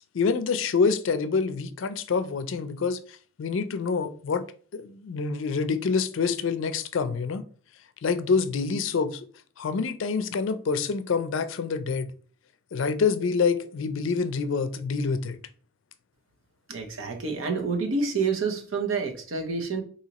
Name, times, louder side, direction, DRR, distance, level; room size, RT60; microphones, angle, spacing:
voice 1, 0.1-3.0 3.4-4.4 4.7-7.4 8.0-9.3 9.6-12.1 12.7-15.4, left 5 dB, 70° left, 0.4 m, -26 dB
voice 2, 16.7-19.8, right 4 dB, 75° right, 0.7 m, -28 dB
4.0 x 2.7 x 2.8 m
head